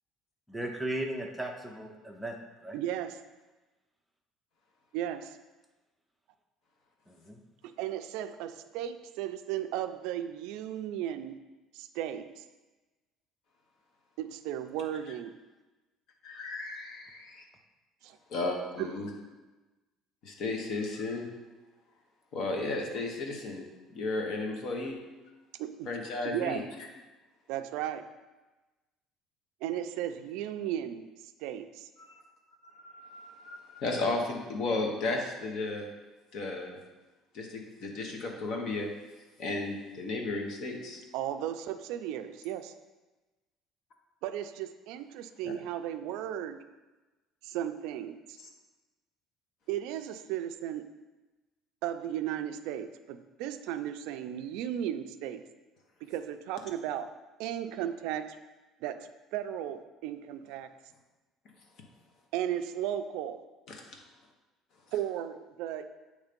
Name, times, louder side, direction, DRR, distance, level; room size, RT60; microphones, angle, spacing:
voice 1, 0.5-2.4 2.6-2.8 7.1-7.4, right 1 dB, 5° right, 1 dB, 0.5 m, -36 dB
voice 2, 2.7-3.2 4.9-5.4 7.6-11.4 11.7-12.4 14.2-15.3 18.0-18.2 18.8-18.9 25.6-25.9 26.2-26.6 27.5-28.0 29.6-31.1 31.4-31.9 41.1-42.7 44.2-46.6 47.4-48.4 49.7-50.8 51.8-55.4 56.0-57.1 57.4-58.4 58.8-60.7 62.3-63.4 64.9-65.9, right 11 dB, 70° right, 10 dB, 0.4 m, -35 dB
voice 3, 16.2-17.4 18.3-19.1 20.2-21.3 22.3-23.6 23.9-25.0 25.9-26.6 32.0-32.1 32.7-35.9 36.3-36.8 37.3-38.9 39.4-41.0 45.4-45.5 48.4-48.5 63.7-64.0, left 2 dB, 45° left, 2 dB, 1.0 m, -34 dB
8.1 x 3.2 x 5.1 m, 1.2 s
cardioid pair, 175°, 0 cm